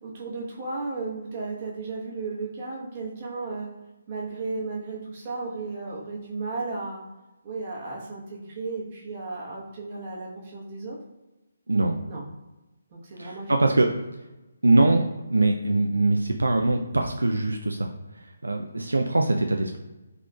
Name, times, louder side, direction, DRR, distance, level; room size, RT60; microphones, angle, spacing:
voice 1, 0.0-3.7 4.1-7.0 7.4-11.0 12.0-12.2 12.9-13.7, right 3 dB, 35° right, -3 dB, 1.0 m, -34 dB
voice 2, 11.7-12.0 13.2-13.9 14.6-15.0 15.3-19.8, right 2 dB, 75° right, 3 dB, 0.3 m, -23 dB
3.6 x 3.5 x 2.3 m, 1.0 s
figure-of-eight pair, 145°, 0 cm